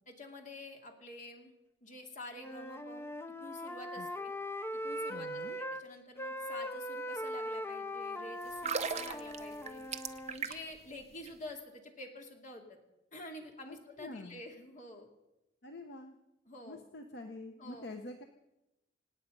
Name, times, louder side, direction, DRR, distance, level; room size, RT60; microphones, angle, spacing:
voice 1, 0.1-1.5 1.8-3.1 3.4-4.3 4.7-9.8 10.3-12.8 13.1-15.1 16.5-16.8 17.6-17.9, left 1 dB, 45° left, 2 dB, 2.6 m, -48 dB
Wind instrument woodwind instrument, 2.3-5.8 6.2-10.4, equal, 15° left, 0.6 m, -40 dB
voice 2, 5.1-5.6 13.7-14.4 15.6-16.1 16.7-18.2, left 2 dB, 60° left, 5 dB, 1.0 m, -46 dB
sound 1, 8.5-10.8 11.1-11.3, right 6 dB, 35° right, 0.8 m, -37 dB
26.5 x 9.2 x 5.4 m, 0.96 s
head